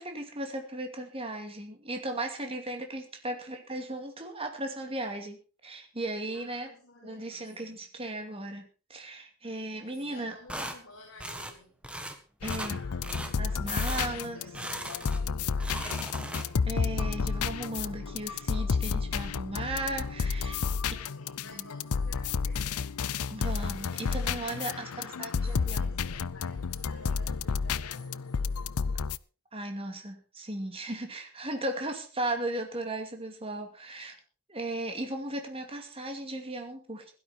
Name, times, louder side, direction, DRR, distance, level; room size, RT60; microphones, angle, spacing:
voice 1, 0.0-6.7 7.0-10.3 12.4-12.8 13.4-14.4 16.7-20.6 21.5-21.6 23.3-25.8 29.5-34.2 34.5-37.1, right 1 dB, 25° right, 2.5 m, -36 dB
voice 2, 6.3-7.8 9.4-11.8 12.4-16.6 20.6-23.0 24.6-28.6, left 2 dB, 60° left, 4.8 m, -53 dB
sound 1, 10.5-10.8 11.2-11.5 11.8-12.2 12.4-12.7 13.0-13.3 13.7-14.1 14.5-15.2 15.5-16.7, right 1 dB, 5° right, 1.5 m, -38 dB
sound 2, 12.4-29.2, left 5 dB, 80° left, 0.6 m, -31 dB
16.5 x 12.5 x 4.4 m
head